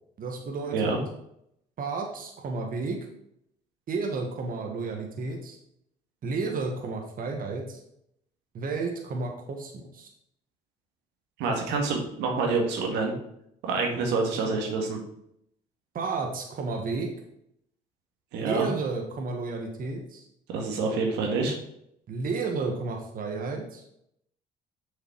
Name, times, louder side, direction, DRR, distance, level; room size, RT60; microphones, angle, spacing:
voice 1, 0.2-1.0 1.8-3.1 3.9-5.6 6.2-7.8 8.5-10.1 15.9-17.1 18.4-20.2 22.1-23.8, right 4 dB, 55° right, 2 dB, 1.5 m, -32 dB
voice 2, 11.4-13.1 13.6-15.0 18.3-18.7 20.5-21.5, right 4 dB, 85° right, 1 dB, 1.8 m, -27 dB
7.0 x 5.8 x 4.6 m, 0.75 s
supercardioid pair, 70°, 18 cm